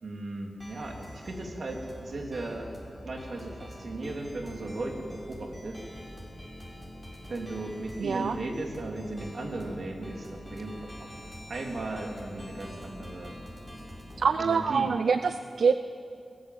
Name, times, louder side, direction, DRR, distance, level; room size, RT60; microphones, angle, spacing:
voice 1, 0.0-2.7 3.0-5.8 7.3-11.1 11.5-13.3 14.4-14.9, right 2 dB, 65° right, 1 dB, 3.2 m, -36 dB
sound 1, 0.6-14.3, equal, 5° right, 6.5 m, -45 dB
voice 2, 8.0-8.4 14.2-15.7, right 5 dB, 85° right, 10 dB, 0.5 m, -25 dB
21.0 x 18.5 x 7.6 m, 2.5 s
wide cardioid pair, 75°, 0 cm